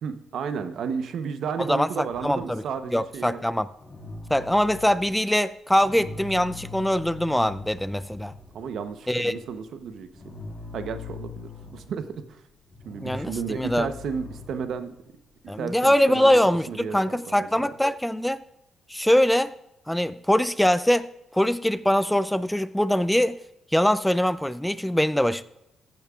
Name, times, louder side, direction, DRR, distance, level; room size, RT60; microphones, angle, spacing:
voice 1, 0.0-3.5 8.5-10.1 10.7-12.4 12.8-14.9 15.5-16.4 16.7-17.7, right 6 dB, 70° right, 10 dB, 0.9 m, -33 dB
voice 2, 1.6-2.6 2.9-3.7 4.3-8.3 9.1-9.4 13.0-13.9 15.5-18.4 18.9-19.5 19.9-23.4 23.7-25.4, left 1 dB, 5° left, 15 dB, 0.3 m, -23 dB
sound 1, 2.1-5.3 5.7-16.7, left 4 dB, 25° left, 2.2 m, -43 dB
15.0 x 8.7 x 2.4 m, 0.85 s
cardioid pair, 90°, 0 cm